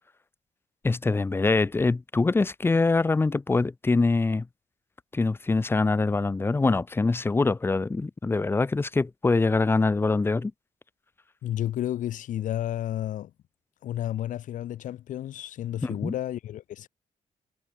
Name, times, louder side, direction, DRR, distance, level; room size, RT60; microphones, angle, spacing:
voice 1, 0.8-4.5 5.1-10.5 15.8-16.1, left 3 dB, 15° left, 2.4 m, -24 dB
voice 2, 11.4-13.3 13.8-16.9, left 12 dB, 85° left, 3.3 m, -31 dB
cardioid pair, 160°, 13 cm